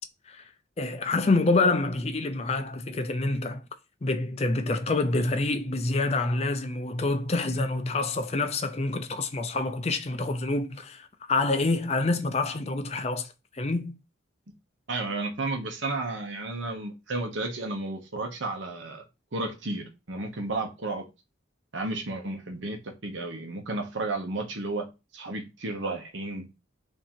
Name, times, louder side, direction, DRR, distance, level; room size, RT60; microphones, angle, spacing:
voice 1, 0.8-3.6 4.0-11.0 11.3-13.3 13.6-14.0, left 3 dB, 30° left, 0.4 m, -27 dB
voice 2, 14.9-19.0 19.3-21.0 21.7-26.5, right 2 dB, 75° right, 0.9 m, -33 dB
3.7 x 2.8 x 4.3 m
head